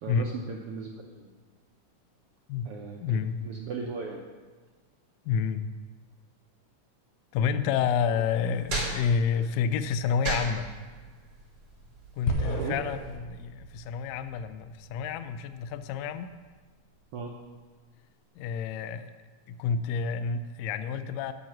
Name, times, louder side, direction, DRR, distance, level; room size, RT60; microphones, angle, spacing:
voice 1, 0.0-1.3 2.6-4.2 8.1-8.2 12.5-12.7 17.1-17.3, right 5 dB, 75° right, 0 dB, 1.3 m, -37 dB
voice 2, 3.0-3.4 5.2-5.6 7.3-10.7 12.2-16.3 18.3-19.1 19.5-21.3, left 6 dB, 85° left, 11 dB, 1.5 m, -29 dB
sound 1, 8.1-13.1, right 2 dB, 45° right, 3.5 m, -36 dB
sound 2, 12.3-16.6, equal, 65° left, 1.5 m, -37 dB
9.1 x 7.3 x 6.3 m, 1.4 s
omnidirectional pair, 3.5 m